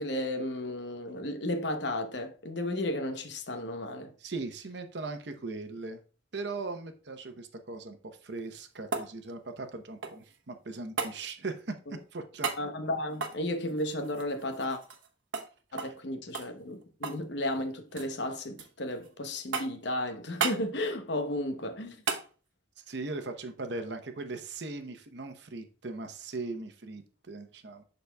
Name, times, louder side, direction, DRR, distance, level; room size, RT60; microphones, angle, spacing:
voice 1, 0.0-4.1 12.6-14.8 15.7-22.0, left 1 dB, 65° left, 0.8 m, -33 dB
voice 2, 4.2-6.0 6.3-8.0 8.2-11.7 12.1-12.5 15.7-15.9 22.9-27.8, right 3 dB, 65° right, 0.8 m, -39 dB
sound 1, 8.3-10.4 11.0-11.2 12.4-12.6 13.1-15.1 15.3-15.5 15.8-16.0 16.3-17.3 17.5-18.1 18.6-19.1 19.5-19.9 20.4-20.6 22.1-22.3 24.6-24.7, right 5 dB, 90° right, 0.9 m, -35 dB
11.5 x 4.0 x 2.2 m
head